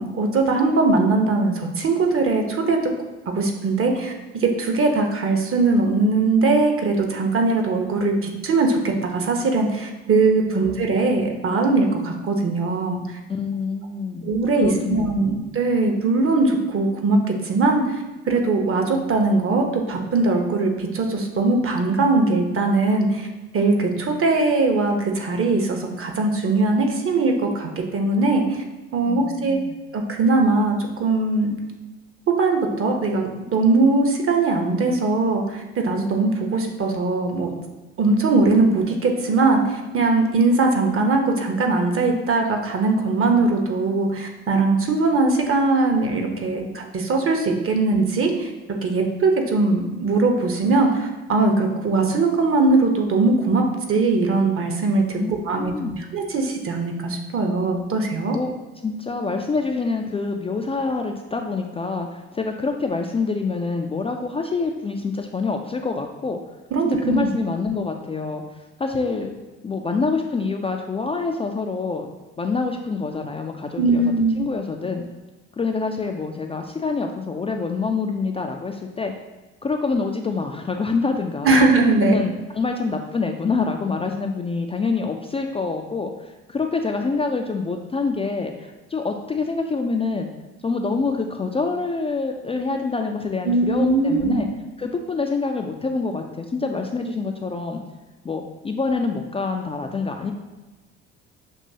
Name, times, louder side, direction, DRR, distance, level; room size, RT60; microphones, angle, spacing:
voice 1, 0.0-2.8 3.3-13.2 14.2-23.3 23.5-28.6 28.9-29.6 29.9-31.5 32.3-37.5 38.0-48.5 48.8-58.4 66.7-67.3 73.8-74.5 81.4-82.2 93.4-94.4, right 3 dB, 40° right, 3 dB, 1.0 m, -20 dB
voice 2, 13.3-15.4 29.1-29.7 55.2-56.1 58.3-58.5 58.8-66.4 66.8-68.4 68.8-69.3 69.6-72.1 72.4-75.0 75.6-79.1 79.6-81.6 82.0-90.3 90.6-94.5 94.8-97.8 98.2-100.3, left 4 dB, 20° left, 3 dB, 0.4 m, -26 dB
6.4 x 2.9 x 2.8 m, 1.1 s
hypercardioid pair, 60°, 32 cm